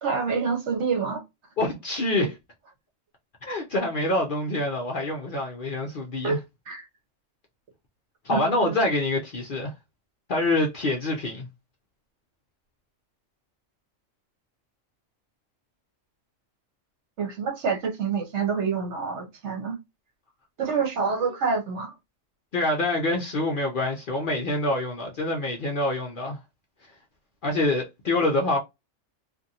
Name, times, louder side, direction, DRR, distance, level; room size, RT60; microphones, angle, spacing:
voice 1, 0.0-1.2 6.2-6.4 6.7-6.8 8.3-8.8 17.2-19.8 20.6-21.9, right 5 dB, 65° right, 1.1 m, -27 dB
voice 2, 1.6-2.4 3.4-6.4 8.2-9.7 10.3-11.5 22.5-26.4 27.4-28.6, left 2 dB, 55° left, 0.6 m, -26 dB
2.5 x 2.5 x 2.7 m
omnidirectional pair, 1.3 m